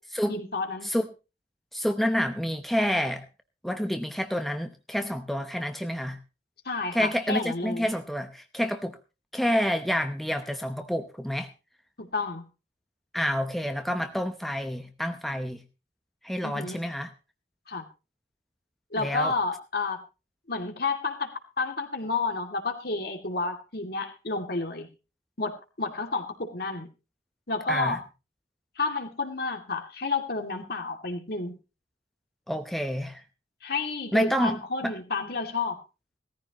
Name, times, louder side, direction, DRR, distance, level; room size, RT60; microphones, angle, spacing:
voice 1, 0.3-0.9 6.6-7.9 12.0-12.4 16.4-16.8 17.7-17.9 18.9-20.0 20.5-24.9 25.4-26.9 27.5-28.0 28.8-31.6 33.6-35.8, left 3 dB, 60° left, 4 dB, 2.5 m, -30 dB
voice 2, 1.7-3.2 3.6-6.2 6.9-9.0 9.3-11.5 13.1-15.6 16.2-17.1 19.0-19.3 27.7-28.0 32.5-33.2 34.1-34.6 34.8-34.9, equal, ahead, 6 dB, 0.8 m, -28 dB
18.0 x 14.0 x 3.0 m, 0.31 s
head